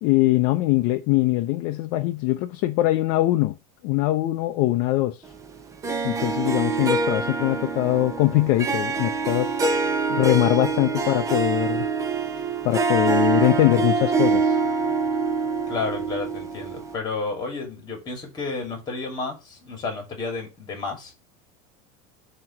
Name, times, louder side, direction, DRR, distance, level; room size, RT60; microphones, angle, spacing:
voice 1, 0.0-3.6 3.8-5.2 6.0-9.5 10.1-11.9 12.6-14.6, left 16 dB, 50° left, 0.5 m, -22 dB
Harp, 5.8-16.9, right 4 dB, 15° right, 0.6 m, -25 dB
voice 2, 15.7-21.1, left 3 dB, 20° left, 2.4 m, -31 dB
7.5 x 3.0 x 5.9 m
cardioid pair, 160°, 20 cm